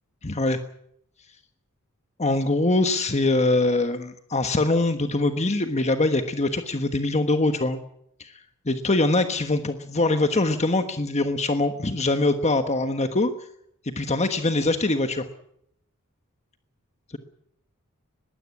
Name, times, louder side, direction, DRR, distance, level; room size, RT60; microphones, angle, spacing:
voice 1, 0.2-0.6 2.2-7.8 8.2-8.3 8.7-13.3 13.8-15.3, left 2 dB, 30° left, 8 dB, 1.3 m, -23 dB
21.5 x 15.5 x 9.6 m, 0.72 s
head